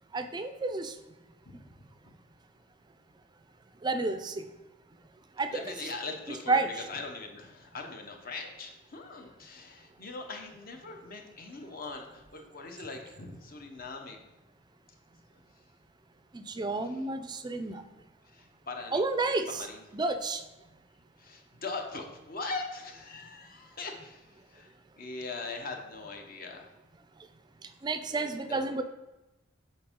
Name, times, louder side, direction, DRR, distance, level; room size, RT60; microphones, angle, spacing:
voice 1, 0.1-0.9 3.8-4.4 5.4-5.6 6.5-6.7 16.3-17.8 18.9-19.6 19.9-20.4 27.8-28.8, right 3 dB, 20° right, 9 dB, 0.4 m, -30 dB
voice 2, 1.5-2.1 5.5-6.6 6.9-14.2 16.8-17.0 18.2-19.0 19.5-19.9 21.2-26.6 28.5-28.7, left 3 dB, 50° left, 4 dB, 0.8 m, -41 dB
7.7 x 4.3 x 3.6 m, 1.0 s
head